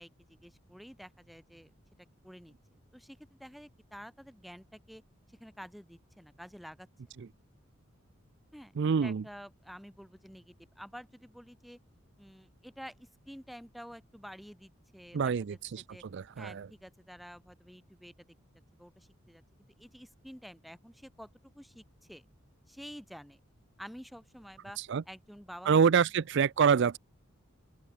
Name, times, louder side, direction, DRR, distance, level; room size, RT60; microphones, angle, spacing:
voice 1, 0.0-1.7 2.2-2.5 2.9-5.0 5.4-6.9 8.5-8.7 9.0-11.8 12.2-15.2 15.5-16.0 16.4-18.3 18.8-22.2 22.7-23.4 23.8-24.8 25.1-25.8, equal, ahead, 2.8 m, -50 dB
voice 2, 8.8-9.2 15.1-15.8 16.1-16.7 24.8-25.0 25.7-27.0, right 6 dB, 60° right, 0.4 m, -26 dB
open air
head